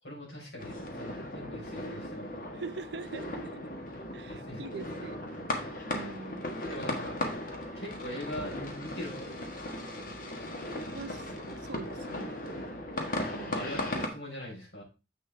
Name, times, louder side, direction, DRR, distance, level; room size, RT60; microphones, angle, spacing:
voice 1, 0.0-2.3 4.3-5.1 6.7-7.2 7.7-9.3 13.5-14.8, left 1 dB, 80° left, -3 dB, 4.5 m, -42 dB
sound 1, 0.6-14.1, left 1 dB, 50° left, 1.4 m, -37 dB
voice 2, 2.5-3.7 4.1-5.2 5.8-6.5 10.7-12.3 13.3-13.6, right 4 dB, 75° right, 12 dB, 0.6 m, -43 dB
7.6 x 6.4 x 3.3 m, 0.30 s
head